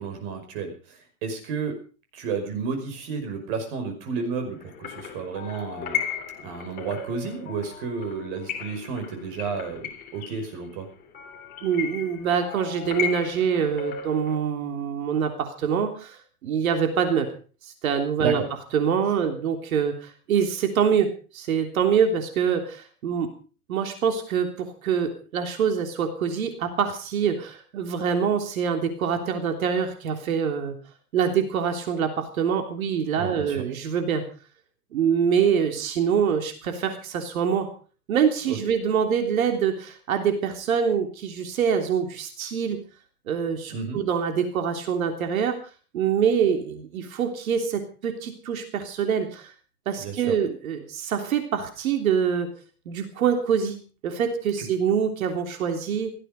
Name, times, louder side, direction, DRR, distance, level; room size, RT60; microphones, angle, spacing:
voice 1, 0.0-1.7 2.1-6.0 6.4-10.9 18.2-18.5 33.2-33.6 38.5-38.6 43.7-44.0 50.0-50.4 54.6-54.7, right 5 dB, 35° right, 5 dB, 5.4 m, -32 dB
sound 1, 4.6-14.3, left 8 dB, 20° left, 3.1 m, -35 dB
voice 2, 11.6-17.3 17.6-18.4 18.7-23.3 23.7-30.8 31.1-34.2 34.9-37.7 38.1-42.8 43.3-45.6 45.9-49.5 49.8-52.5 52.8-53.8 54.0-56.1, right 7 dB, 60° right, 6 dB, 3.4 m, -25 dB
17.5 x 14.0 x 5.3 m, 0.39 s
hypercardioid pair, 160°, 46 cm